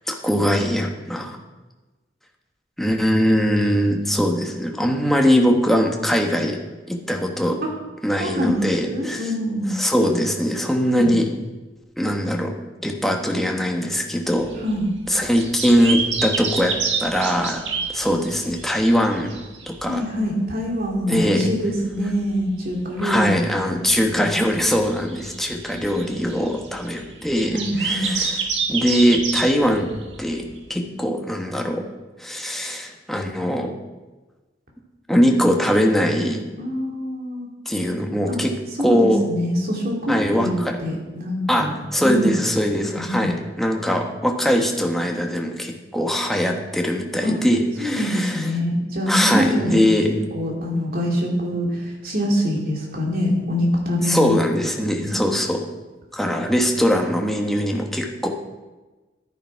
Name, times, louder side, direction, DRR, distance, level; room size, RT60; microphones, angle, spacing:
voice 1, 0.1-1.4 2.8-6.6 6.9-7.6 8.0-9.3 9.7-11.4 12.0-12.5 12.8-14.5 15.1-17.6 17.9-19.4 19.7-20.0 21.1-21.5 23.0-28.4 28.7-29.9 30.2-31.8 32.2-33.7 35.1-36.4 37.6-38.5 38.8-39.3 40.1-40.8 41.5-48.6 49.1-50.1 54.0-55.7 56.1-58.3, equal, ahead, 1 dB, 1.3 m, -21 dB
voice 2, 8.2-9.7 10.9-11.1 14.6-14.9 19.9-23.4 27.5-28.1 36.6-37.5 38.3-38.4 38.8-42.3 42.9-43.3 47.2-47.3 47.8-54.3 55.1-55.2, equal, 55° right, -1 dB, 2.8 m, -24 dB
sound 1, 14.3-20.2 20.5-20.6 20.9-21.0 21.3-21.4 21.9-22.8 23.1-23.2 23.9-30.6, right 5 dB, 75° right, 1.6 m, -29 dB
11.5 x 10.0 x 4.7 m, 1.2 s
head